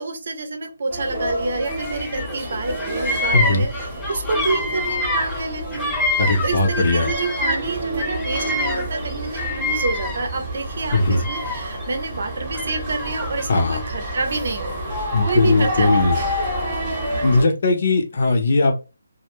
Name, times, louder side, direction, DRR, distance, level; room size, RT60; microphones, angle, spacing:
voice 1, 0.0-5.9 6.4-14.8 15.2-16.6 17.1-17.5, right 3 dB, 55° right, 5 dB, 0.7 m, -28 dB
sound 1, 0.9-17.4, equal, 15° right, 0.9 m, -29 dB
Bird vocalization bird call bird song, 1.6-2.4 2.6-7.7 8.0-10.4 10.8-11.8 12.5-13.6, left 2 dB, 10° left, 0.5 m, -27 dB
voice 2, 3.3-3.7 6.2-7.1 10.9-11.3 13.5-13.8 15.1-16.2 17.2-18.7, left 3 dB, 50° left, 4 dB, 0.7 m, -19 dB
2.2 x 2.1 x 3.1 m, 0.30 s
hypercardioid pair, 160°, 0 cm